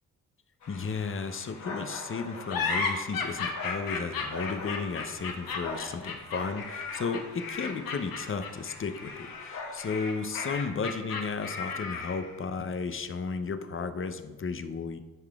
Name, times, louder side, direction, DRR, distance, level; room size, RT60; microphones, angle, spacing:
sound 1, 0.6-10.9, left 3 dB, 50° left, 1.2 m, -44 dB
voice 1, 0.7-15.0, left 5 dB, 35° left, 9 dB, 0.6 m, -34 dB
sound 2, 2.5-12.3, left 4 dB, 75° left, 1.0 m, -34 dB
10.5 x 4.8 x 2.3 m, 1.3 s
supercardioid pair, 55°, 36 cm